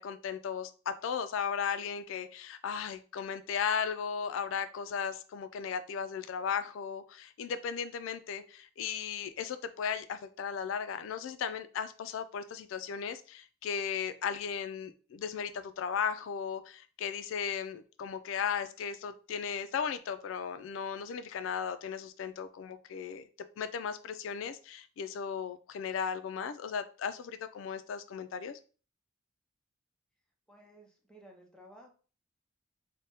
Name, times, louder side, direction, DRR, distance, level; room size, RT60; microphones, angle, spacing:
voice 1, 0.0-23.2 23.6-28.6, left 7 dB, 80° left, 11 dB, 0.3 m, -36 dB
voice 2, 30.5-31.9, equal, 5° left, 0 dB, 0.6 m, -55 dB
3.4 x 2.1 x 2.7 m, 0.38 s
head